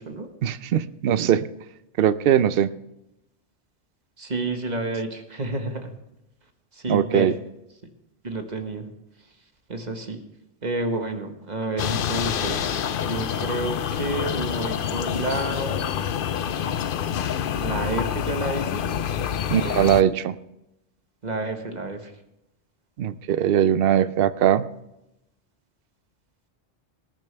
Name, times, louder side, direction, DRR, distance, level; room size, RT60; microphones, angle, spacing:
voice 1, 0.4-1.5 2.0-2.7 6.9-7.3 19.5-20.4 23.0-24.7, right 10 dB, 60° right, 15 dB, 0.8 m, -20 dB
voice 2, 4.2-5.9 6.7-7.3 8.2-8.8 9.7-10.2 10.6-15.9 17.6-19.3 21.2-22.1, right 2 dB, 40° right, 5 dB, 1.5 m, -30 dB
sound 1, 11.8-20.0, left 8 dB, 55° left, 0.7 m, -27 dB
19.5 x 10.5 x 3.4 m, 0.88 s
omnidirectional pair, 1.2 m